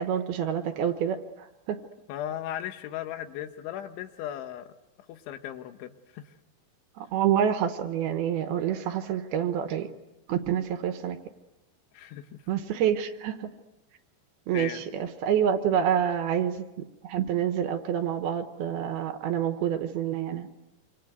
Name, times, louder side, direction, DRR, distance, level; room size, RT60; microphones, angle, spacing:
voice 1, 0.0-1.8 7.0-9.9 10.3-11.2 12.5-13.5 14.5-16.7 17.0-20.5, right 9 dB, 70° right, 8 dB, 2.7 m, -27 dB
voice 2, 2.1-4.7 5.1-6.4 11.9-12.3 14.5-14.8, left 11 dB, 90° left, 9 dB, 3.7 m, -37 dB
26.5 x 26.5 x 8.1 m, 1.0 s
omnidirectional pair, 5.2 m